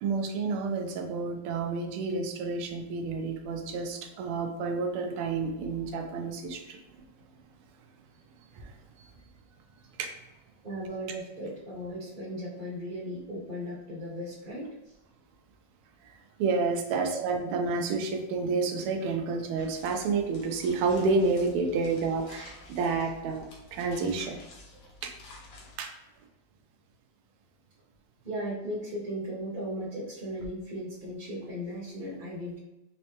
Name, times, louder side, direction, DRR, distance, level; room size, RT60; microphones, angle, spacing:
voice 1, 0.0-6.8 10.0-10.1 16.4-23.4 23.7-24.4 25.0-25.1 25.8-25.9, right 4 dB, 80° right, 3 dB, 1.5 m, -29 dB
voice 2, 10.6-14.7 16.9-17.2 28.2-32.6, equal, 35° right, -9 dB, 1.0 m, -37 dB
sound 1, 19.6-25.8, left 2 dB, 70° left, 1.5 m, -51 dB
4.9 x 2.1 x 2.9 m, 0.95 s
omnidirectional pair, 2.4 m